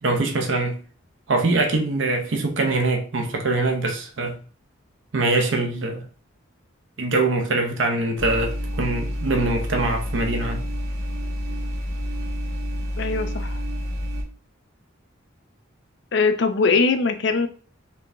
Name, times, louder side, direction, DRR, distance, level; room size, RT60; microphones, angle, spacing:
voice 1, 0.0-0.8 1.3-4.4 5.1-6.0 7.0-10.7, right 2 dB, 65° right, 0.6 m, -23 dB
sound 1, 8.2-14.2, equal, 90° right, 1.8 m, -28 dB
voice 2, 13.0-13.6 16.1-17.5, left 4 dB, 60° left, 0.5 m, -21 dB
4.5 x 3.3 x 2.5 m
head